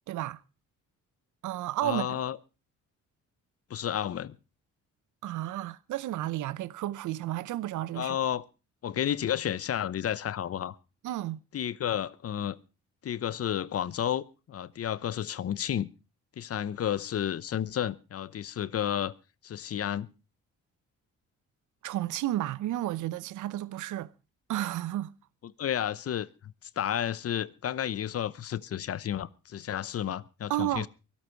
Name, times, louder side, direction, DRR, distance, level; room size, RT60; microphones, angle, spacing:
voice 1, 0.1-0.4 1.4-2.2 5.2-8.2 11.0-11.4 21.8-24.1 24.5-25.1 30.5-30.9, right 14 dB, 80° right, 0.8 m, -32 dB
voice 2, 1.8-2.4 3.7-4.4 7.9-8.4 8.8-10.8 11.5-12.6 13.0-15.9 16.4-19.1 19.4-20.1 25.4-30.9, left 10 dB, 50° left, 0.9 m, -31 dB
23.5 x 8.7 x 4.5 m
cardioid pair, 90°, 30 cm